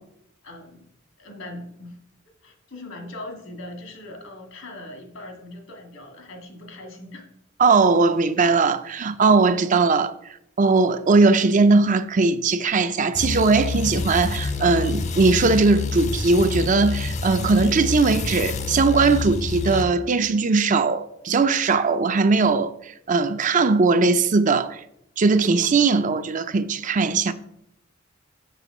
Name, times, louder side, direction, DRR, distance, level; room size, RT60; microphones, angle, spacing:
voice 1, 0.4-0.8 1.2-2.0 2.4-7.2, left 1 dB, 75° left, 1.9 m, -40 dB
voice 2, 7.6-10.1 10.6-24.8 25.2-27.3, right 4 dB, 40° right, 0.5 m, -19 dB
sound 1, 13.1-19.8, left 4 dB, 35° left, 0.6 m, -28 dB
6.9 x 6.5 x 4.9 m
head